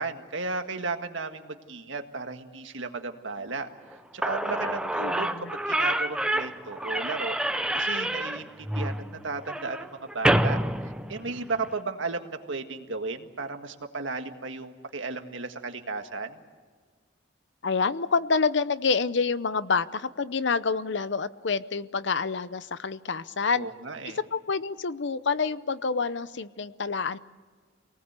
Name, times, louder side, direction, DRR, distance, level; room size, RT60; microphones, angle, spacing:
voice 1, 0.0-5.3 5.7-7.4 7.7-10.6 11.1-16.4 23.5-24.2, right 3 dB, 70° right, 6 dB, 1.7 m, -34 dB
Slam / Squeak, 3.9-4.0 4.2-11.7, right 1 dB, 5° right, 0.7 m, -28 dB
voice 2, 5.0-5.5 17.6-23.7 24.3-27.2, left 4 dB, 60° left, 15 dB, 0.7 m, -27 dB
25.5 x 19.0 x 8.3 m, 1.5 s
head